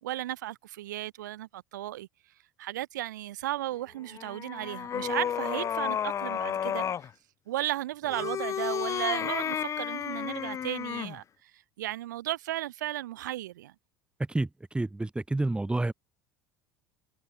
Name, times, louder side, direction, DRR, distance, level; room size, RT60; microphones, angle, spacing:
voice 1, 0.0-2.1 2.6-6.8 7.5-13.7, right 14 dB, 70° right, 3.5 m, -35 dB
sound 1, 4.1-7.1 8.0-11.2, left 8 dB, 30° left, 0.6 m, -32 dB
voice 2, 14.7-15.9, right 2 dB, 10° right, 2.9 m, -28 dB
figure-of-eight pair, 70°, 10 cm